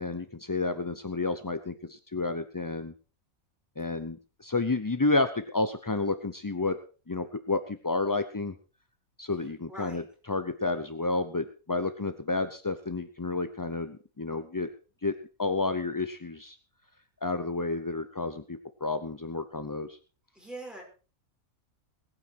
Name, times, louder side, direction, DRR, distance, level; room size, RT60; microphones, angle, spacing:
voice 1, 0.0-2.9 3.8-6.8 7.1-8.5 9.2-10.0 10.3-14.7 15.0-15.1 15.4-16.6 17.2-20.0, left 3 dB, 25° left, 9 dB, 0.5 m, -30 dB
voice 2, 9.7-10.0 20.3-20.8, right 1 dB, ahead, -1 dB, 5.7 m, -42 dB
21.0 x 9.0 x 4.7 m, 0.36 s
omnidirectional pair, 1.5 m